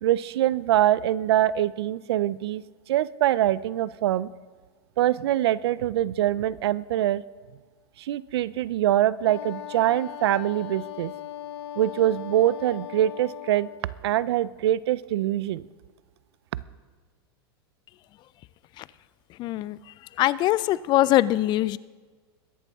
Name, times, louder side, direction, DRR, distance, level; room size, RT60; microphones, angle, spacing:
voice 1, 0.0-4.3 5.0-7.2 8.0-11.1 11.8-13.7 14.0-15.7, right 12 dB, 80° right, 19 dB, 0.5 m, -24 dB
Wind instrument woodwind instrument, 9.2-13.9, left 11 dB, 80° left, 0.8 m, -39 dB
voice 2, 19.3-21.8, left 15 dB, 35° left, 19 dB, 0.4 m, -23 dB
22.0 x 11.0 x 3.6 m, 1.4 s
supercardioid pair, 130°, 13 cm